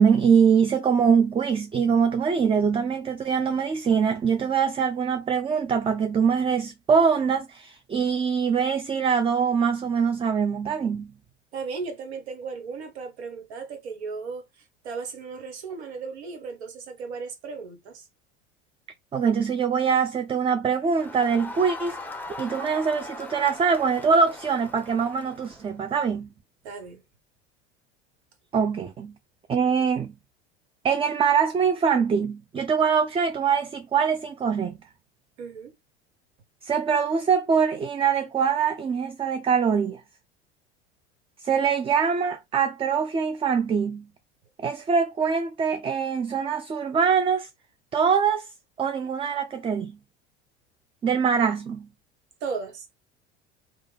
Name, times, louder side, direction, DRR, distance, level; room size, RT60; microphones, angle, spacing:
voice 1, 0.0-11.1 19.1-22.0 22.4-26.3 28.5-29.1 29.5-30.1 30.8-34.8 36.6-40.0 41.4-44.1 44.6-47.5 47.9-48.5 48.8-50.0 51.0-51.9, right 6 dB, 15° right, 0.4 m, -23 dB
voice 2, 11.5-18.1 26.6-27.0 35.4-35.7 52.4-52.9, right 5 dB, 75° right, 1.4 m, -36 dB
Crowd, 20.9-25.7, left 2 dB, 5° left, 0.8 m, -40 dB
3.6 x 2.5 x 3.3 m
hypercardioid pair, 80°, 33 cm